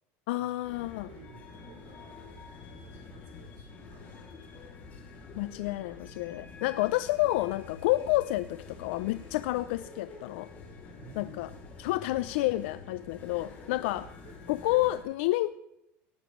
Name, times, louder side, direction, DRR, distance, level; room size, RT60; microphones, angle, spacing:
voice 1, 0.3-1.1 5.3-10.5 11.2-11.5 11.8-14.1 14.5-15.6, left 17 dB, 80° left, 14 dB, 0.4 m, -29 dB
sound 1, 0.6-15.0, left 4 dB, 30° left, 2.6 m, -47 dB
voice 2, 1.1-2.2 2.7-5.0 11.0-11.4 13.8-13.9 14.2-14.4, right 5 dB, 65° right, -2 dB, 5.4 m, -55 dB
18.0 x 13.0 x 3.1 m, 0.87 s
cardioid pair, 180°, 6 cm